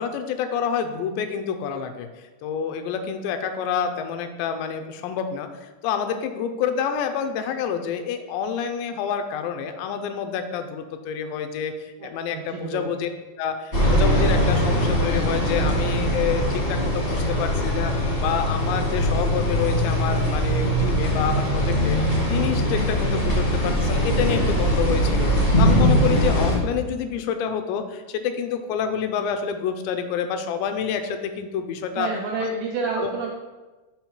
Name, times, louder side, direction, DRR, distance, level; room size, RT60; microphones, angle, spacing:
voice 1, 0.0-13.1 13.4-17.9 18.2-25.3 25.6-32.1 32.4-32.5 33.0-33.1, left 7 dB, 85° left, 7 dB, 2.8 m, -28 dB
voice 2, 12.0-12.9 32.0-33.3, right 4 dB, 80° right, -2 dB, 2.1 m, -29 dB
sound 1, 13.7-26.6, equal, 50° left, 0.6 m, -21 dB
7.1 x 5.6 x 4.4 m, 1.2 s
omnidirectional pair, 5.0 m